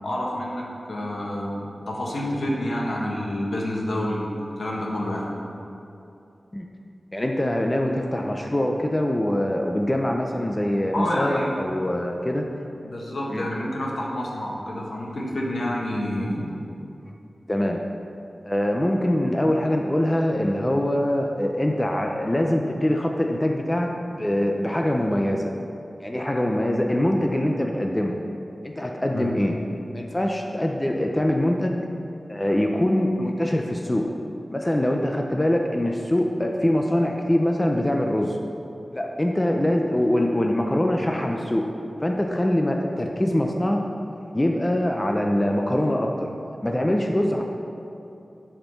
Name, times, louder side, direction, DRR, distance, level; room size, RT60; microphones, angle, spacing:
voice 1, 0.0-5.3 10.9-11.5 12.8-16.6 29.1-29.3, left 1 dB, 75° left, -3 dB, 1.5 m, -28 dB
voice 2, 7.1-12.4 13.3-13.5 17.5-17.8 18.4-23.9 24.2-25.5 26.0-28.2 28.6-29.6 29.9-31.8 32.3-34.2 34.5-38.4 38.9-41.7 42.0-43.8 44.3-46.3 46.6-47.4, left 1 dB, 20° left, 1 dB, 0.6 m, -23 dB
11.0 x 4.4 x 5.7 m, 2.8 s
wide cardioid pair, 80°, 0 cm